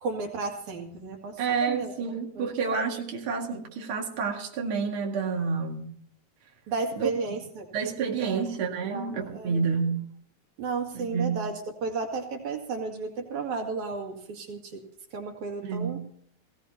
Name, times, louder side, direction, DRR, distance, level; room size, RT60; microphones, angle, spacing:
voice 1, 0.0-1.4 1.7-1.9 2.4-2.5 6.7-7.7 8.3-8.5 8.9-9.6 10.6-14.8 15.1-16.0, right 4 dB, 90° right, 3 dB, 3.6 m, -33 dB
voice 2, 1.4-5.9 7.0-7.1 7.7-10.1 10.9-11.4 15.6-16.0, right 5 dB, 50° right, 0 dB, 2.7 m, -29 dB
18.5 x 17.0 x 2.8 m, 0.64 s
omnidirectional pair, 3.3 m